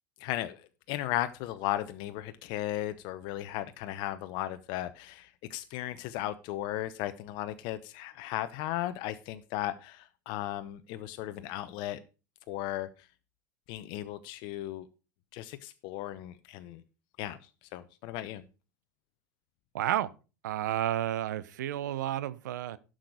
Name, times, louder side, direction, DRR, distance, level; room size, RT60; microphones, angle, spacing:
voice 1, 0.2-0.6 0.9-12.0 12.5-13.1 13.7-14.9 15.3-16.8 17.2-17.4 17.7-18.4, left 14 dB, 55° left, 0.8 m, -36 dB
voice 2, 19.7-20.1 20.4-22.8, right 12 dB, 75° right, 0.8 m, -31 dB
11.5 x 6.4 x 4.9 m
hypercardioid pair, 85°, 10 cm